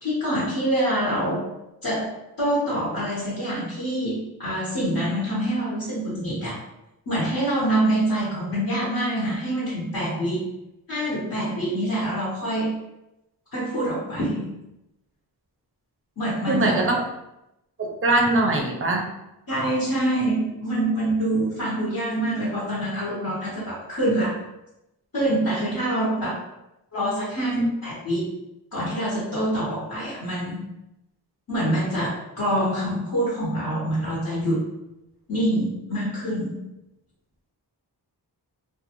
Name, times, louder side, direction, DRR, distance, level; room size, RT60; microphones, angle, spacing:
voice 1, 0.0-1.5 1.8-2.1 2.4-6.6 7.1-10.4 10.9-12.7 13.5-14.5 16.2-16.7 19.5-24.4 25.1-26.4 26.9-28.2 28.7-30.7 31.5-34.6 35.3-36.6, right 1 dB, 55° left, -8 dB, 1.0 m, -25 dB
voice 2, 16.5-17.0 17.8-19.1 27.5-27.7, right 2 dB, 35° right, 1 dB, 0.5 m, -22 dB
2.5 x 2.3 x 2.9 m, 0.91 s
wide cardioid pair, 90°, 41 cm